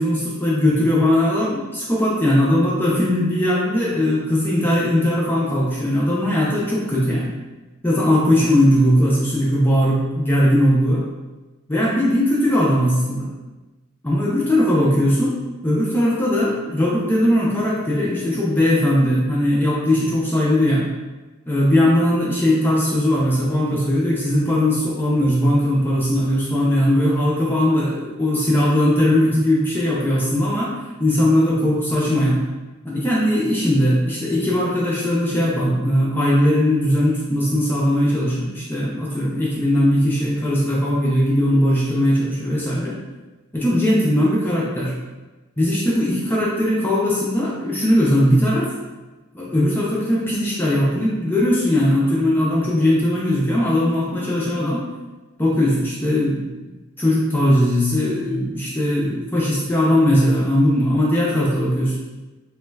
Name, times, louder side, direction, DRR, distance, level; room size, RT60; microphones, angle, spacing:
voice 1, 0.0-7.3 7.8-11.0 11.7-13.3 14.0-15.4 15.6-20.9 21.5-30.7 31.0-32.4 32.8-43.0 43.5-44.9 45.6-48.7 49.3-54.8 55.4-61.9, left 1 dB, 10° left, -6 dB, 0.4 m, -19 dB
3.1 x 2.2 x 3.1 m, 1.2 s
head